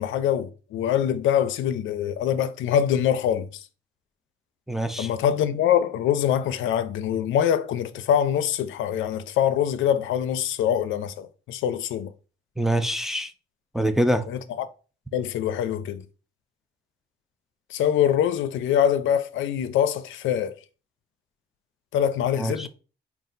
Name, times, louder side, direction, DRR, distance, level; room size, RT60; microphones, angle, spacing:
voice 1, 0.0-3.6 5.0-12.1 14.3-14.7 15.1-16.0 17.7-20.6 21.9-22.7, left 9 dB, 80° left, 0.4 m, -24 dB
voice 2, 4.7-5.1 12.6-13.3 13.7-14.3 22.4-22.7, right 1 dB, ahead, 0.4 m, -24 dB
4.0 x 2.3 x 3.8 m
cardioid pair, 90°, 20 cm